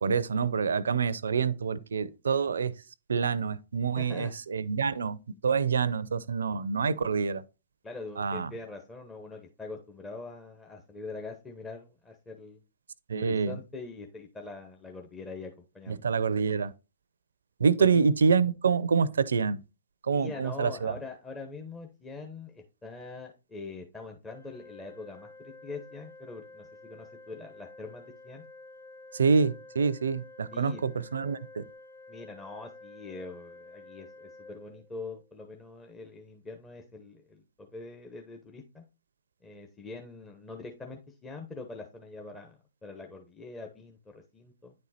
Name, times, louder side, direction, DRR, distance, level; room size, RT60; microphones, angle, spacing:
voice 1, 0.0-2.7 3.1-5.2 5.4-7.4 8.2-8.5 13.1-13.6 15.9-16.7 17.6-19.6 20.1-20.9 29.1-31.6, right 5 dB, 80° right, 0.6 m, -26 dB
voice 2, 4.0-4.3 7.8-12.6 13.1-16.0 17.8-18.0 20.1-28.4 30.5-30.8 32.1-38.8 39.4-44.7, left 3 dB, 15° left, 1.1 m, -43 dB
Organ, 24.3-35.3, left 2 dB, 70° left, 1.8 m, -50 dB
9.5 x 4.4 x 4.2 m
hypercardioid pair, 120°, 0 cm